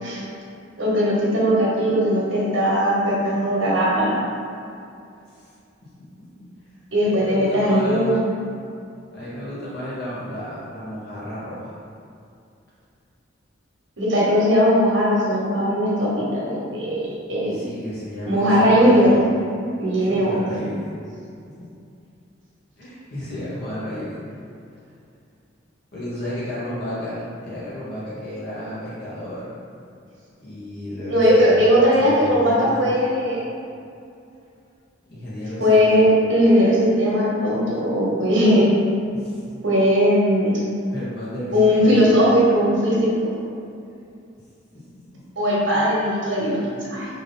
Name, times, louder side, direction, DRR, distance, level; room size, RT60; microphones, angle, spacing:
voice 1, 0.8-4.2 6.9-8.2 14.0-17.6 18.3-19.2 19.8-20.4 31.1-33.4 35.6-38.7 39.6-40.6 41.5-43.3 45.4-46.6 46.9-47.1, equal, 75° right, -6 dB, 1.1 m, -18 dB
voice 2, 7.0-8.2 9.1-11.8 17.5-19.3 20.1-21.0 21.4-21.5 22.8-24.2 25.9-29.5 30.4-32.9 35.1-36.0 39.1-39.5 40.9-42.2 44.7-44.8, left 1 dB, 55° left, -9 dB, 0.9 m, -32 dB
3.6 x 2.6 x 3.7 m, 2.5 s
head